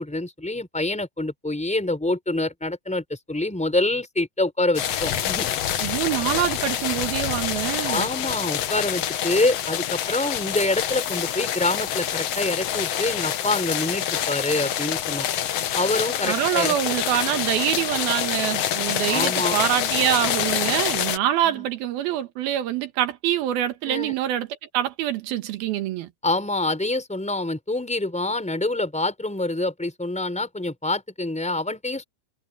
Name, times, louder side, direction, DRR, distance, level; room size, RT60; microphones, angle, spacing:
voice 1, 0.0-5.5 7.9-15.3 15.7-16.7 19.1-19.6 21.4-21.6 23.9-24.1 26.2-32.0, left 2 dB, ahead, 4.2 m, -26 dB
sound 1, 4.7-21.2, left 10 dB, 70° left, 1.5 m, -26 dB
voice 2, 5.8-8.1 16.2-24.5 24.7-26.1, right 12 dB, 75° right, 3.2 m, -25 dB
omnidirectional pair, 4.4 m